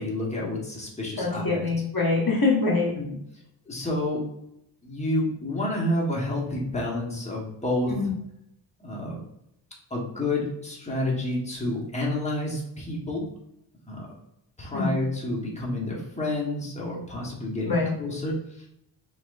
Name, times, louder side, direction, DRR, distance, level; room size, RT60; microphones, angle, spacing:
voice 1, 0.0-1.7 3.0-3.1 3.7-4.2 4.8-8.1 8.8-9.2 9.9-13.2 13.9-14.1 14.6-18.7, left 1 dB, 15° left, -4 dB, 1.2 m, -29 dB
voice 2, 1.2-2.9 7.9-8.1 14.7-14.9 17.7-17.9, left 3 dB, 50° left, -2 dB, 1.0 m, -24 dB
5.9 x 3.0 x 2.5 m, 0.79 s
wide cardioid pair, 130°, 46 cm